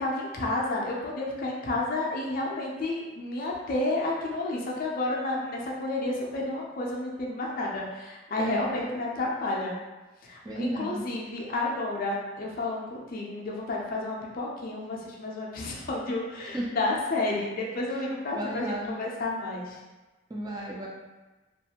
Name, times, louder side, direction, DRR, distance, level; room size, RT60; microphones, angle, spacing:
voice 1, 0.0-9.8 10.2-19.8, left 2 dB, 45° left, -2 dB, 0.5 m, -31 dB
voice 2, 8.4-9.0 10.4-11.1 16.5-16.7 18.3-18.9 20.3-20.9, right 1 dB, 20° right, -3 dB, 0.4 m, -33 dB
2.5 x 2.3 x 2.8 m, 1.2 s
head